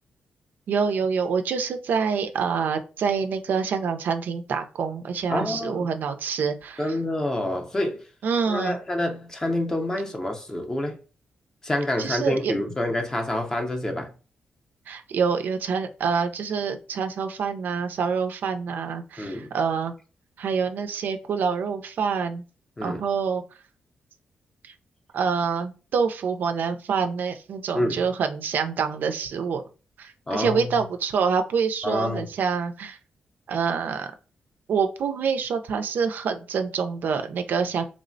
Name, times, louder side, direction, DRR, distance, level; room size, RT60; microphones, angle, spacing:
voice 1, 0.7-6.9 8.2-8.8 12.0-12.5 14.9-19.9 20.4-22.4 22.8-23.4 24.6-24.7 25.1-29.6 30.0-33.0 33.5-34.1 34.7-37.8, right 6 dB, 70° right, 0.3 m, -26 dB
voice 2, 5.3-5.9 6.8-8.1 8.5-11.0 11.6-14.1 19.2-19.5 22.8-23.0 27.7-28.0 30.3-30.8 31.8-32.3, left 1 dB, 20° left, 0.5 m, -27 dB
3.1 x 2.0 x 2.5 m
cardioid pair, 120°, 3 cm